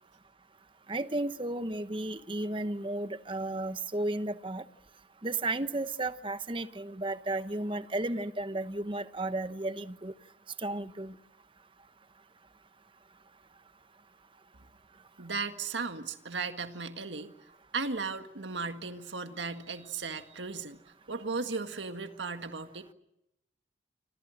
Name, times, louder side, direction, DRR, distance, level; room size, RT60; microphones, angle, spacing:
voice 1, 0.9-4.6 5.2-10.1 10.6-11.1, right 2 dB, 25° right, 12 dB, 1.0 m, -33 dB
voice 2, 15.2-17.3 17.7-20.8 21.1-22.9, right 4 dB, 80° right, 7 dB, 1.8 m, -36 dB
27.0 x 26.5 x 6.5 m, 0.86 s
head